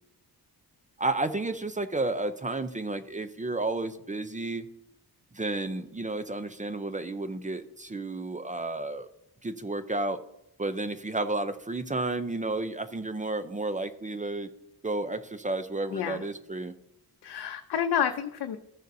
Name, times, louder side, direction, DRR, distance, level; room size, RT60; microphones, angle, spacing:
voice 1, 1.0-4.6 5.3-9.1 9.4-10.2 10.6-14.5 14.8-16.7, right 2 dB, 20° right, 10 dB, 0.5 m, -32 dB
voice 2, 15.9-16.2 17.2-18.6, left 8 dB, 80° left, 6 dB, 0.6 m, -29 dB
15.0 x 6.6 x 2.7 m, 0.81 s
wide cardioid pair, 135°, 38 cm